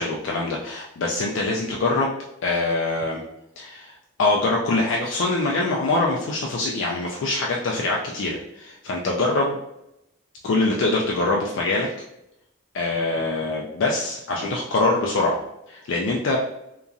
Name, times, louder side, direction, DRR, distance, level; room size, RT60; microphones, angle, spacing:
voice 1, 0.0-2.1 2.4-3.2 3.6-9.6 10.4-11.9 12.7-15.4 15.7-16.4, left 2 dB, 70° left, -2 dB, 0.4 m, -24 dB
2.9 x 2.4 x 2.5 m, 0.84 s
head